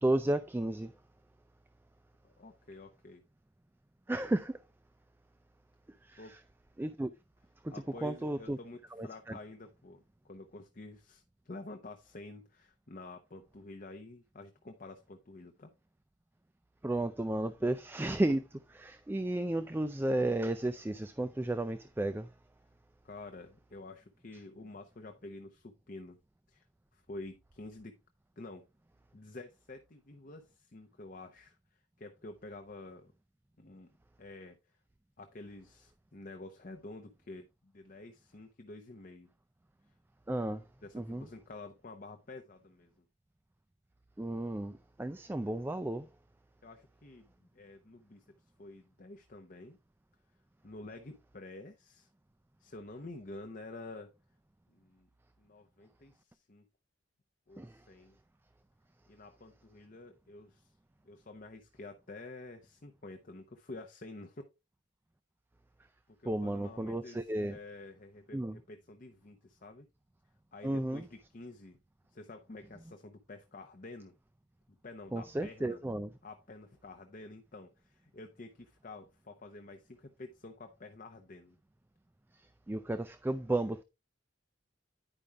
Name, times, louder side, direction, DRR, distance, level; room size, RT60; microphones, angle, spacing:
voice 1, 0.0-0.9 4.1-4.6 6.0-6.2 6.8-7.1 7.6-7.7 8.0-8.6 8.9-9.4 16.8-22.3 40.3-40.6 40.9-41.3 44.2-46.1 57.6-57.8 66.3-67.6 68.3-68.6 70.6-71.0 75.1-76.1 82.4-83.8, right 1 dB, 10° right, 0.3 m, -33 dB
voice 2, 2.2-3.2 6.2-6.4 7.7-15.7 23.0-26.2 26.5-26.7 26.9-28.0 28.4-28.6 29.1-33.1 33.6-33.9 34.2-34.6 35.2-39.3 40.8-43.0 46.6-48.2 48.6-49.8 50.6-52.1 52.6-54.1 54.7-55.1 55.4-56.6 57.5-58.2 59.1-60.7 61.0-64.4 66.1-67.2 67.4-69.9 70.5-71.8 72.1-74.1 74.8-75.8 76.2-81.6, left 2 dB, 45° left, 0.8 m, -49 dB
10.0 x 5.2 x 3.4 m
head